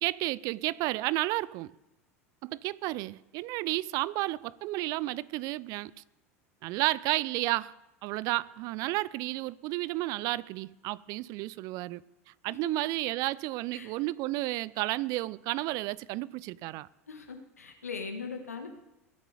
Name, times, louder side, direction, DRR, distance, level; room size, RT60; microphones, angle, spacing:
voice 1, 0.0-1.7 2.4-5.9 6.6-7.7 8.0-12.0 12.4-16.9, right 19 dB, 50° right, 0.5 m, -32 dB
voice 2, 17.1-18.7, left 5 dB, 85° left, 1.7 m, -40 dB
22.5 x 8.4 x 5.0 m
figure-of-eight pair, 80°, 8 cm